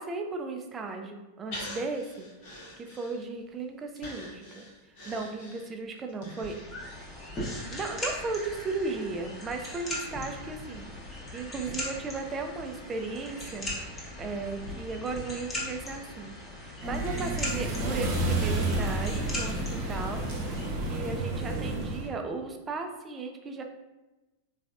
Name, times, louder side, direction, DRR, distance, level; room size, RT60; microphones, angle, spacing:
voice 1, 0.0-2.3 2.8-4.7 5.1-6.5 7.7-13.7 14.2-23.6, right 3 dB, 20° right, 4 dB, 0.4 m, -36 dB
Breathing, 1.5-3.5 4.0-8.1 8.5-8.6, left 1 dB, 50° left, 1.1 m, -45 dB
sound 1, 6.4-20.7, left 1 dB, 20° left, 0.9 m, -39 dB
sound 2, 16.8-22.1, right 2 dB, 45° right, 0.9 m, -30 dB
3.9 x 3.1 x 2.4 m, 1.1 s
figure-of-eight pair, 90°, 0 cm